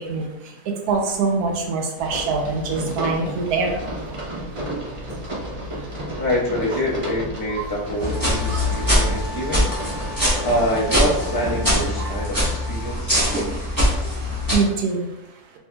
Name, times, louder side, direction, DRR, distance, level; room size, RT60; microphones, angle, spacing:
voice 1, 0.9-3.8 8.5-8.7 12.0-12.1 14.5-15.1, right 4 dB, 85° right, 2 dB, 1.2 m, -23 dB
sound 1, 2.0-11.6, right 1 dB, 35° right, 0.5 m, -32 dB
voice 2, 6.2-9.7 10.4-12.4 12.7-13.4, equal, 20° left, -5 dB, 0.7 m, -25 dB
sound 2, 8.0-14.5, left 1 dB, 15° right, 1.3 m, -23 dB
Wind instrument woodwind instrument, 8.1-13.0, left 3 dB, 60° left, 0.9 m, -38 dB
4.4 x 3.3 x 2.2 m, 0.93 s
omnidirectional pair, 1.6 m